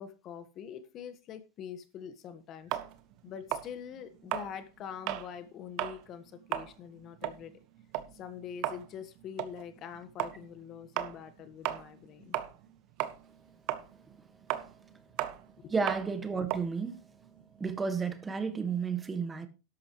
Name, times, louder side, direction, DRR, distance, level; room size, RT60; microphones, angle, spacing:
voice 1, 0.0-2.8 3.2-7.5 8.1-12.4 15.6-15.7, left 8 dB, 35° left, 1.6 m, -44 dB
sound 1, 2.7-5.3 5.7-6.0 6.4-12.7 13.0-17.8, right 13 dB, 50° right, 1.4 m, -36 dB
voice 2, 15.7-17.1 17.6-19.5, right 5 dB, 15° right, 1.6 m, -32 dB
13.0 x 11.5 x 3.2 m
supercardioid pair, 135°, 0 cm